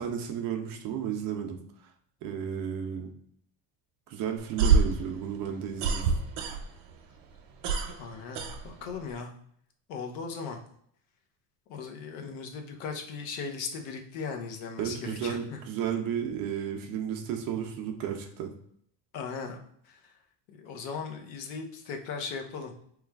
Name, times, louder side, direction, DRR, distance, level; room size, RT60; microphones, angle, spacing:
voice 1, 0.0-1.6 2.2-3.1 4.1-6.0 14.8-18.5, right 8 dB, 45° right, 4 dB, 0.5 m, -33 dB
sound 1, 4.4-6.9 7.2-9.1, right 5 dB, 80° right, 0.8 m, -26 dB
voice 2, 8.0-9.3 9.9-10.6 11.7-15.6 19.1-19.6 19.8-20.1 20.5-22.7, left 5 dB, 80° left, 3 dB, 0.8 m, -38 dB
3.2 x 2.3 x 3.3 m, 0.67 s
cardioid pair, 155°, 49 cm